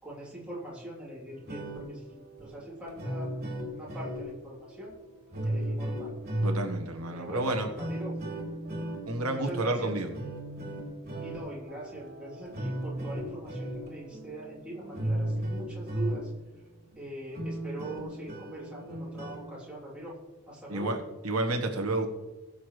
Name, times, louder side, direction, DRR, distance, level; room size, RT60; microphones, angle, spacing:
voice 1, 0.0-3.3 3.7-5.0 5.4-6.1 7.1-8.1 9.3-9.9 11.2-16.3 16.9-20.1 20.5-20.9, right 1 dB, 5° right, -7 dB, 3.3 m, -42 dB
sound 1, 1.3-16.5 16.9-17.0 17.3-19.5, right 1 dB, 45° right, 2.9 m, -36 dB
voice 2, 6.4-7.7 9.1-10.1 20.7-21.0 21.2-22.1, right 2 dB, 90° right, 3 dB, 1.5 m, -30 dB
20.5 x 7.1 x 3.2 m, 1.1 s
head